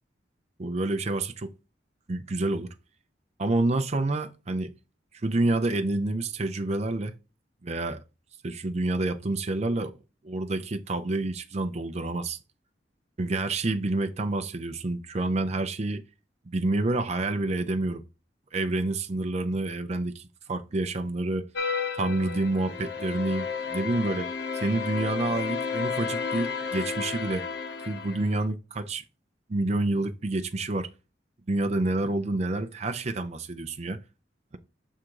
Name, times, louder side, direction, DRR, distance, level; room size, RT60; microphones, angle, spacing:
voice 1, 0.6-1.5 2.1-2.7 3.4-4.7 5.2-7.1 7.6-8.0 8.4-9.9 10.2-12.4 13.2-16.0 16.5-18.0 18.5-21.5 22.0-24.3 24.5-27.4 27.8-29.0 29.5-30.9 31.5-34.0, right 2 dB, 40° right, 0.6 m, -28 dB
sound 1, 21.5-28.5, left 5 dB, 70° left, 1.0 m, -32 dB
6.3 x 3.7 x 4.6 m
head